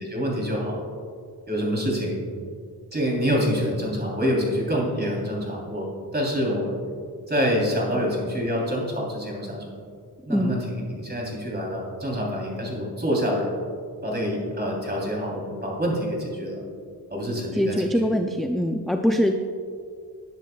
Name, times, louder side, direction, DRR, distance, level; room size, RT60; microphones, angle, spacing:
voice 1, 0.1-0.8 1.5-2.2 2.9-6.7 7.3-9.7 10.2-13.5 14.0-16.6 17.1-18.0, equal, 25° right, -3 dB, 3.3 m, -26 dB
voice 2, 17.6-19.4, equal, ahead, 4 dB, 0.4 m, -23 dB
20.0 x 10.5 x 2.3 m, 2.2 s
wide cardioid pair, 145°, 40 cm